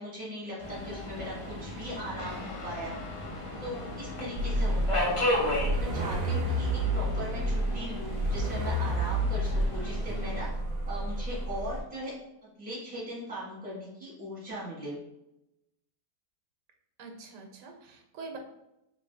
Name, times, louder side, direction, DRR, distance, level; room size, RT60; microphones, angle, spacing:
voice 1, 0.0-3.0 3.6-10.5 10.9-15.0, equal, 5° right, -7 dB, 1.0 m, -39 dB
Subway metro underground, 0.6-10.5, left 1 dB, 35° left, 0.4 m, -35 dB
Guitar, 2.2-11.9, left 3 dB, 75° left, 1.1 m, -48 dB
sound 1, 4.4-11.8, right 1 dB, 65° right, 0.9 m, -30 dB
voice 2, 17.0-18.4, right 4 dB, 90° right, 3 dB, 1.3 m, -44 dB
3.1 x 2.6 x 3.2 m, 0.86 s
omnidirectional pair, 1.8 m